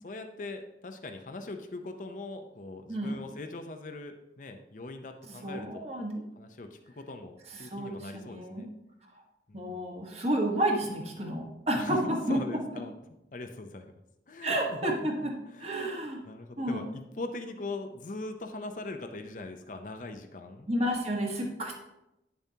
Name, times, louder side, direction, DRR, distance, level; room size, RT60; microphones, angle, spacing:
voice 1, 0.0-5.9 6.4-8.7 9.5-9.9 11.7-13.0 13.3-13.9 14.3-14.9 15.5-15.9 16.3-20.7, left 2 dB, 45° left, 6 dB, 0.5 m, -41 dB
voice 2, 2.9-3.2 5.2-6.2 7.5-8.7 9.5-12.4 14.4-15.3 15.6-16.2 16.6-16.8 20.7-21.8, right 1 dB, 35° right, 0 dB, 1.3 m, -31 dB
9.5 x 7.0 x 2.8 m, 0.88 s
head